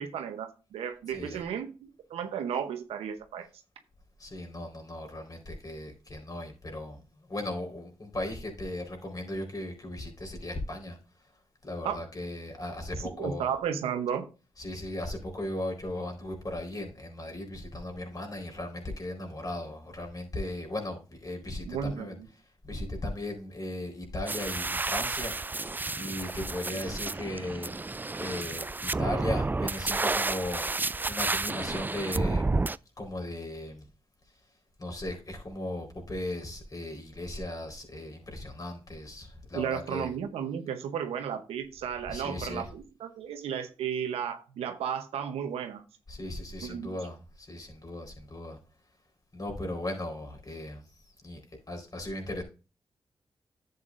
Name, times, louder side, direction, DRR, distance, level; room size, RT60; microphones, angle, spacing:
voice 1, 0.0-3.5 11.8-12.0 13.2-14.3 21.6-22.3 39.5-45.8 46.6-46.9, right 8 dB, 90° right, 0.9 m, -34 dB
voice 2, 1.1-1.4 4.2-7.0 7.3-11.0 11.6-13.5 14.6-22.2 22.6-25.6 25.9-27.8 28.2-30.6 31.1-32.6 33.0-33.9 34.8-40.1 42.1-42.7 46.1-48.6 49.3-50.8 51.2-51.4 51.7-52.4, left 1 dB, 40° left, 4.3 m, -37 dB
sound 1, 24.3-32.8, right 3 dB, 20° right, 0.3 m, -31 dB
11.0 x 8.1 x 2.5 m
supercardioid pair, 40°, 10 cm